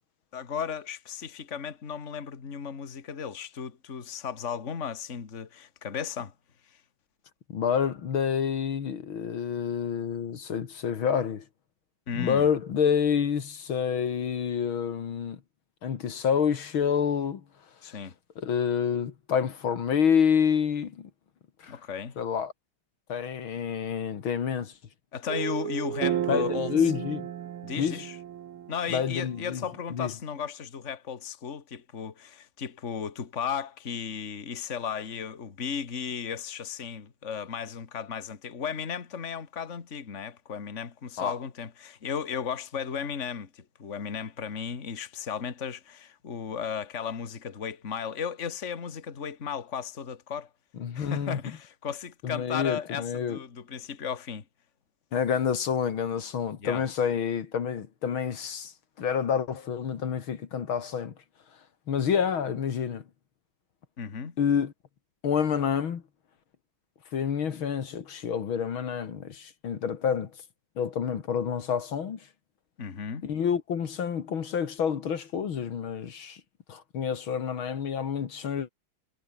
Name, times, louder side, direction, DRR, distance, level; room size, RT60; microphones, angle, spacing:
voice 1, 0.3-6.3 6.7-6.8 12.1-12.5 17.8-18.1 21.7-22.1 25.1-26.7 27.6-28.2 28.7-50.5 50.9-54.4 56.6-56.8 64.0-64.3 72.8-73.2, left 7 dB, 35° left, 2.1 m, -35 dB
voice 2, 7.5-11.4 12.2-15.4 15.8-17.4 18.4-21.1 21.6-21.8 22.2-22.5 23.1-24.7 26.3-27.3 27.8-28.0 28.9-29.6 29.9-30.1 41.2-41.3 50.8-51.4 52.2-53.4 55.1-61.1 61.9-63.0 64.4-64.7 65.2-66.0 67.1-70.3 70.8-72.3 73.2-76.4 76.7-78.7, left 7 dB, 70° left, 2.5 m, -28 dB
sound 1, 25.3-29.7, right 10 dB, 75° right, 2.2 m, -33 dB
omnidirectional pair, 2.3 m